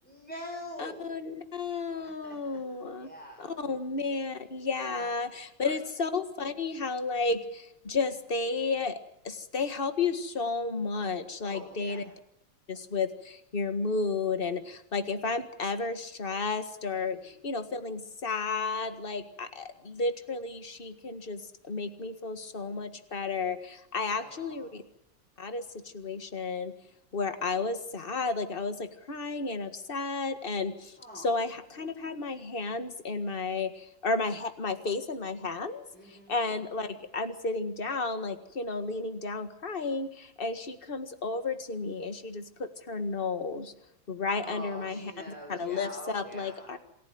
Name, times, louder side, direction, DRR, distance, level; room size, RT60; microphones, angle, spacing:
voice 1, 0.0-1.2 2.0-2.6 2.9-3.4 4.8-5.2 5.6-5.8 11.4-12.0 17.0-17.4 24.2-24.7 31.0-31.4 35.9-36.4 44.4-46.7, equal, 5° left, 0 dB, 5.1 m, -45 dB
voice 2, 0.8-3.1 3.4-12.0 12.7-24.8 25.4-26.7 27.1-43.7 44.1-45.1 45.5-46.8, left 4 dB, 30° left, 8 dB, 1.9 m, -32 dB
27.5 x 16.0 x 9.5 m, 0.77 s
omnidirectional pair, 2.1 m